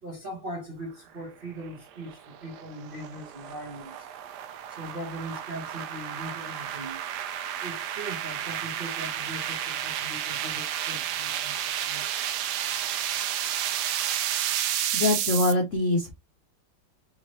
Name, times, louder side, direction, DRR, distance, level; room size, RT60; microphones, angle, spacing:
voice 1, 0.0-4.1 4.7-7.0 7.6-12.3, right 1 dB, 55° right, 0.6 m, -40 dB
sound 1, 1.6-15.5, right 10 dB, 85° right, 0.9 m, -31 dB
voice 2, 14.9-16.1, left 2 dB, 85° left, 0.6 m, -24 dB
3.7 x 3.1 x 2.8 m
omnidirectional pair, 2.3 m